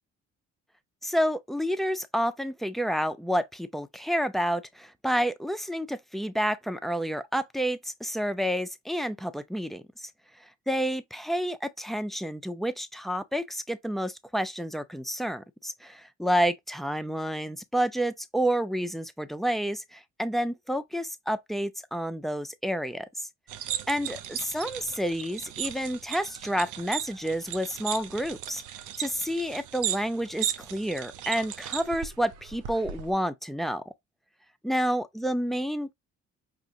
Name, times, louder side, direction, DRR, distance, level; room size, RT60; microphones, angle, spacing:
voice 1, 1.0-10.1 10.4-23.3 23.9-28.6 29.0-33.8 34.6-35.9, equal, ahead, 0.5 m, -29 dB
sound 1, 23.5-33.1, right 11 dB, 85° right, 0.6 m, -36 dB
5.0 x 2.9 x 2.7 m
cardioid pair, 90°, 30 cm